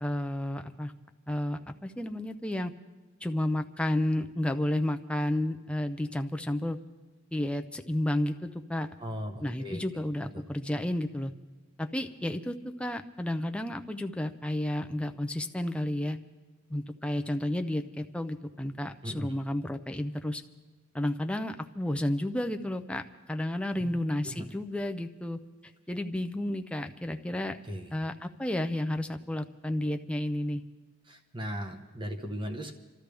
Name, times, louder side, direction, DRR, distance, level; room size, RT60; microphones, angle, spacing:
voice 1, 0.0-0.9 1.3-2.7 3.2-6.8 7.3-8.9 9.4-11.3 11.8-16.2 16.7-20.4 20.9-25.4 25.9-27.6 27.9-30.6, left 1 dB, 5° left, 6 dB, 0.5 m, -31 dB
voice 2, 9.0-9.8 19.0-19.3 23.8-24.0 24.2-24.4 27.7-27.9 31.1-32.7, equal, 25° right, 5 dB, 1.1 m, -37 dB
28.5 x 13.0 x 3.4 m, 1.3 s
head